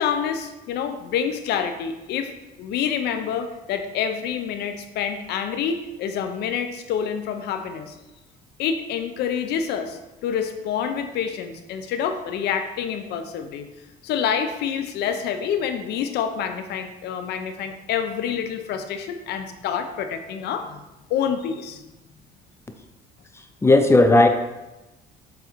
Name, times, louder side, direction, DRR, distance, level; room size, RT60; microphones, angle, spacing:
voice 1, 0.0-2.3 2.6-8.0 8.6-13.7 14.0-20.8 21.1-21.8, left 7 dB, 75° left, 8 dB, 0.8 m, -27 dB
voice 2, 23.3-24.3, left 2 dB, 15° left, 6 dB, 0.7 m, -16 dB
7.4 x 3.9 x 4.5 m, 1.0 s
cardioid pair, 110°, 17 cm